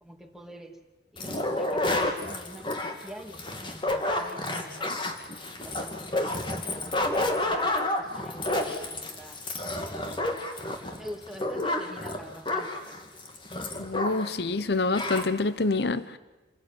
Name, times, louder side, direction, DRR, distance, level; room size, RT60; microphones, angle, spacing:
voice 1, 0.0-0.8 1.1-5.0 5.6-10.2 10.9-13.0, equal, ahead, 2.5 m, -46 dB
sound 1, 1.2-14.4 14.6-14.7 14.9-15.3, left 1 dB, 25° left, 2.5 m, -30 dB
voice 2, 13.8-16.2, left 3 dB, 60° left, 0.9 m, -27 dB
28.0 x 17.5 x 9.1 m
head